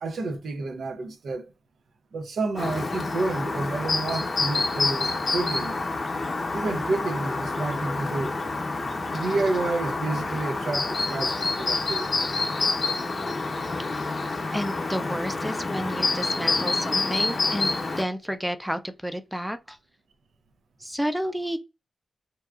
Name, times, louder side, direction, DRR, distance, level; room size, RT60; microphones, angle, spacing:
voice 1, 0.0-1.5 2.1-5.8 6.5-8.4 9.1-12.3, right 3 dB, 85° right, 0.4 m, -30 dB
Chirp tweet, 2.6-18.0, left 3 dB, 50° left, 0.7 m, -28 dB
voice 2, 14.5-17.7 18.0-19.8 20.8-21.6, equal, ahead, 0.3 m, -31 dB
2.7 x 2.3 x 2.3 m
wide cardioid pair, 135°, 0 cm